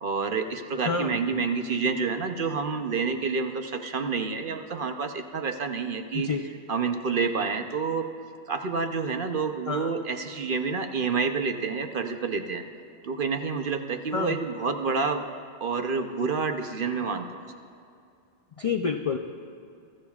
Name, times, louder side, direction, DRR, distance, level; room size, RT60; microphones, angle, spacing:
voice 1, 0.0-6.3 6.7-8.1 8.5-12.6 13.0-15.2 15.6-17.4, right 5 dB, 55° right, 6 dB, 0.8 m, -28 dB
voice 2, 0.8-1.4 6.1-6.4 9.7-9.9 14.1-14.4 18.6-19.2, left 5 dB, 55° left, 5 dB, 0.4 m, -28 dB
23.0 x 13.5 x 2.4 m, 2.4 s
omnidirectional pair, 1.2 m